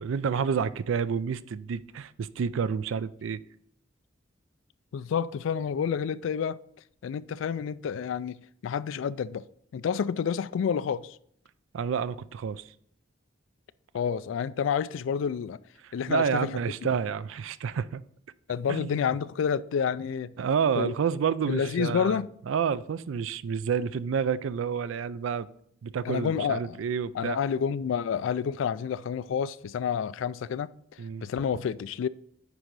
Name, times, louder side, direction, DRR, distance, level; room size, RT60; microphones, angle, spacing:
voice 1, 0.0-3.4 11.7-12.6 15.8-18.0 18.7-19.0 20.4-22.2 22.5-25.5 25.8-27.4 31.0-31.2, right 6 dB, 80° right, 0.4 m, -29 dB
voice 2, 4.9-6.6 7.0-8.4 8.6-9.4 9.7-11.2 13.9-15.6 15.9-16.6 18.5-20.3 20.8-20.9 21.5-22.3 26.0-26.8 27.1-30.7 31.2-32.1, left 7 dB, 75° left, 0.3 m, -29 dB
9.5 x 3.8 x 4.7 m
head